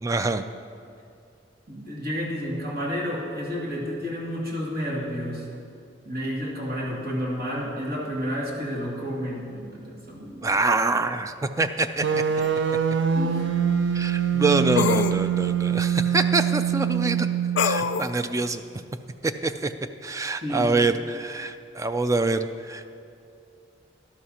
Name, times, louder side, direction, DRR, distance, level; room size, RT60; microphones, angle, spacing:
voice 1, 0.0-0.4 10.4-12.0 13.9-17.3 17.6-18.6 19.2-19.7 20.0-22.9, right 3 dB, 15° right, 10 dB, 0.3 m, -25 dB
voice 2, 1.7-5.5 6.0-10.5 13.1-13.5 20.4-20.7, equal, 55° right, -5 dB, 2.4 m, -31 dB
sound 1, 12.0-18.1, right 8 dB, 75° right, 0.5 m, -24 dB
sound 2, 12.4-12.5 14.8-15.2 17.6-18.1, left 6 dB, 70° left, 0.4 m, -24 dB
12.5 x 12.0 x 2.9 m, 2.4 s
head